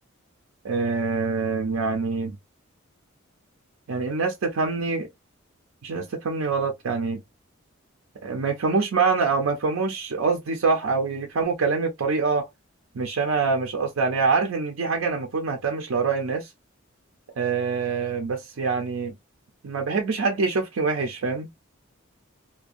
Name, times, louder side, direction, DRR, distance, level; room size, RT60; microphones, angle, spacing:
voice 1, 0.6-2.4 3.9-5.1 5.8-7.2 8.2-12.5 12.9-16.5 17.4-19.1 19.6-21.5, right 4 dB, 80° right, 0.5 m, -25 dB
2.5 x 2.2 x 2.4 m
head